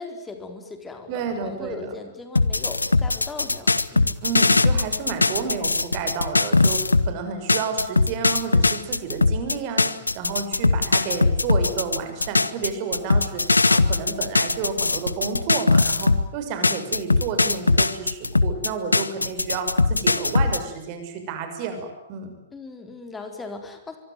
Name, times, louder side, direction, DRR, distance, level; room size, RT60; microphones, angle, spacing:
voice 1, 0.0-4.2 22.5-24.0, left 3 dB, 10° left, 6 dB, 4.3 m, -38 dB
voice 2, 1.1-1.9 4.2-13.4 13.7-22.4, right 5 dB, 35° right, 7 dB, 6.7 m, -31 dB
sound 1, 2.4-7.1 7.5-16.3 16.6-20.6, left 3 dB, 80° left, 1.1 m, -20 dB
24.5 x 24.5 x 9.3 m, 0.83 s
figure-of-eight pair, 110°, 0 cm